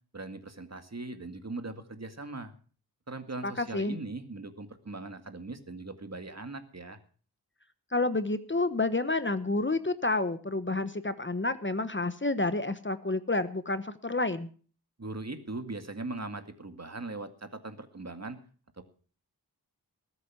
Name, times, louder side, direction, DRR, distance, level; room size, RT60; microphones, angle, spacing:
voice 1, 0.1-2.5 3.1-7.0 15.0-18.4 18.8-18.9, right 2 dB, 40° right, 8 dB, 2.0 m, -40 dB
voice 2, 3.4-4.0 7.9-14.5, left 2 dB, 30° left, 12 dB, 1.1 m, -29 dB
19.5 x 8.2 x 6.1 m, 0.42 s
wide cardioid pair, 65°, 39 cm